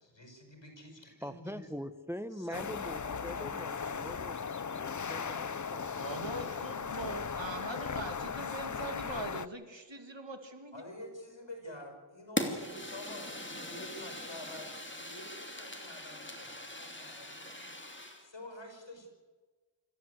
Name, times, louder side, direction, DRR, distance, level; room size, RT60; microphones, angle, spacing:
voice 1, 0.0-1.7 2.3-4.1 10.7-17.7 18.2-19.1, left 1 dB, 85° left, 4 dB, 5.4 m, -49 dB
voice 2, 1.2-4.4 4.7-6.4, equal, 5° right, 11 dB, 1.2 m, -43 dB
sound 1, 2.5-9.5, left 6 dB, 45° left, 0.6 m, -37 dB
voice 3, 5.9-10.8, right 2 dB, 90° right, 6 dB, 2.5 m, -42 dB
Fire, 12.4-18.3, left 1 dB, 25° left, 2.8 m, -40 dB
26.5 x 14.0 x 8.1 m, 1.4 s
wide cardioid pair, 40°, 43 cm